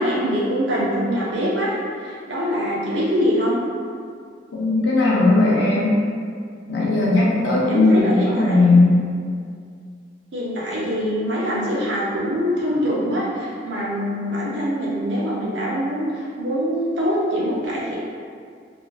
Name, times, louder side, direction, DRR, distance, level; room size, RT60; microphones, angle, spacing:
voice 1, 0.0-3.6 7.7-8.6 10.3-18.0, equal, 70° right, -6 dB, 0.6 m, -23 dB
voice 2, 4.5-5.9 6.7-9.0, left 2 dB, 80° left, -6 dB, 0.6 m, -17 dB
3.6 x 2.4 x 2.4 m, 2.2 s
head